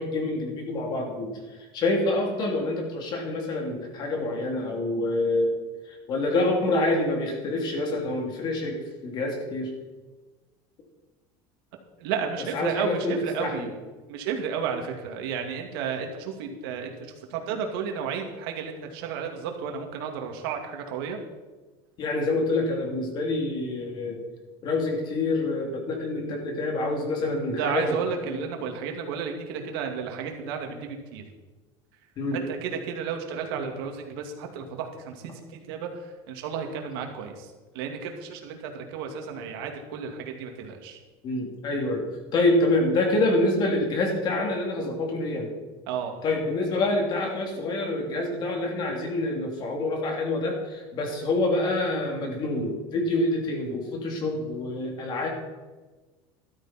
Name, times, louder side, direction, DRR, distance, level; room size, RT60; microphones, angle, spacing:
voice 1, 0.0-1.3 1.7-5.6 5.9-8.8 9.0-9.7 12.5-13.7 22.0-24.2 24.6-28.4 32.2-32.4 41.2-42.1 42.3-45.5 46.2-55.3, left 2 dB, 35° left, 1 dB, 3.0 m, -26 dB
voice 2, 12.0-13.7 14.1-21.2 27.6-31.2 32.3-41.0 45.9-46.1, right 6 dB, 85° right, 3 dB, 2.4 m, -32 dB
13.5 x 12.5 x 4.4 m, 1.3 s
cardioid pair, 160°, 12 cm